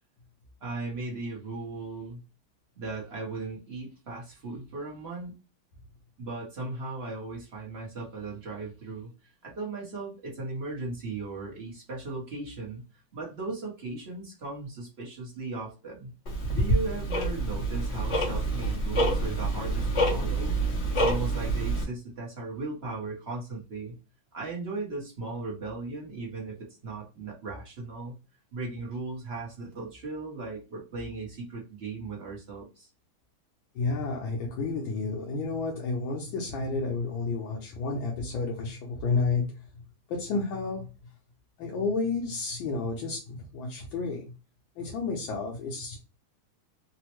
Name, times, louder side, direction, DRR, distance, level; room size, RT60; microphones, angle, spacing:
voice 1, 0.6-2.2 2.8-5.3 6.2-9.1 9.4-16.1 16.5-20.5 20.9-23.9 24.3-28.1 28.5-32.9, right 3 dB, 55° right, -3 dB, 0.7 m, -37 dB
Tick-tock, 16.3-21.8, right 1 dB, 45° left, 1.0 m, -27 dB
voice 2, 33.7-39.7 40.1-40.9 41.6-44.3 44.8-46.0, left 4 dB, 75° left, -1 dB, 1.4 m, -31 dB
3.7 x 2.0 x 2.9 m, 0.31 s
omnidirectional pair, 2.3 m